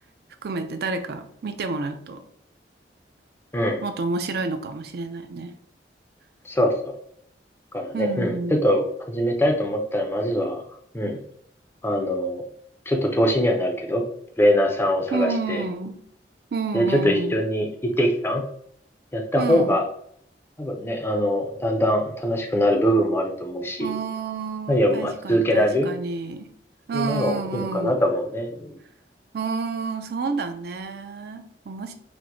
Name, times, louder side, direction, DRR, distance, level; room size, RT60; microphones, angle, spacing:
voice 1, 0.4-2.2 3.8-5.6 7.9-8.5 15.1-16.0 16.5-17.4 19.4-19.8 23.8-26.5 26.9-28.0 29.3-31.9, right 4 dB, 60° right, 8 dB, 0.4 m, -29 dB
voice 2, 6.4-6.9 7.7-10.6 10.9-11.2 11.8-12.4 12.9-14.1 14.4-15.6 16.7-18.4 19.1-19.9 20.6-23.9 24.7-25.9 26.9-28.7, equal, 15° left, 3 dB, 0.4 m, -23 dB
4.4 x 2.0 x 2.6 m, 0.68 s
head